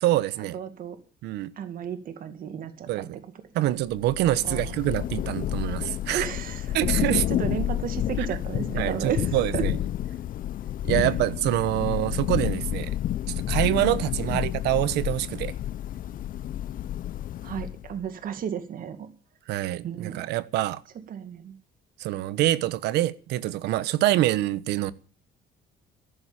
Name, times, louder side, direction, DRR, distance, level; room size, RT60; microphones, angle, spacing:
voice 1, 0.0-0.6 1.2-1.5 2.9-3.1 3.5-6.3 6.7-7.2 8.8-9.8 10.8-12.9 13.3-15.5 19.5-20.8 22.0-24.9, right 15 dB, 85° right, 1.2 m, -25 dB
voice 2, 0.5-1.0 1.6-3.3 3.6-3.7 4.4-4.7 6.1-6.8 7.1-9.6 14.3-14.4 17.4-19.1 19.8-20.2 21.1-21.6, right 8 dB, 55° right, 2.2 m, -34 dB
Thunder / Rain, 3.9-18.0, left 12 dB, 55° left, 0.7 m, -30 dB
14.5 x 11.5 x 8.9 m
cardioid pair, 110°, 17 cm